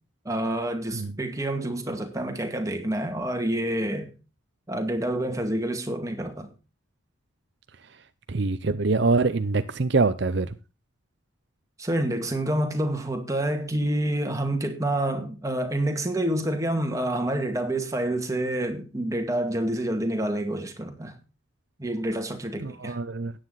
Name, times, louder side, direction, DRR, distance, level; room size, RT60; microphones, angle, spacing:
voice 1, 0.2-4.1 4.7-6.5 11.8-21.1 21.8-23.0, right 1 dB, 15° right, 2.2 m, -28 dB
voice 2, 8.3-10.5 22.6-23.3, right 3 dB, 55° right, 0.6 m, -24 dB
13.5 x 9.7 x 4.0 m
head